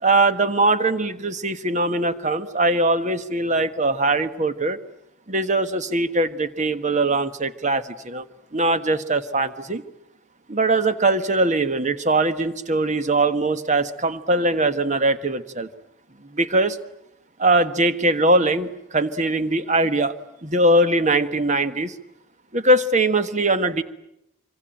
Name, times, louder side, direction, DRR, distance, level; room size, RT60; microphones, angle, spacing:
voice 1, 0.0-4.8 5.3-8.2 8.5-9.8 10.5-15.7 16.3-16.8 17.4-20.1 20.4-21.9 22.5-23.8, right 2 dB, 35° right, 11 dB, 1.4 m, -21 dB
25.5 x 25.0 x 9.1 m, 0.82 s
head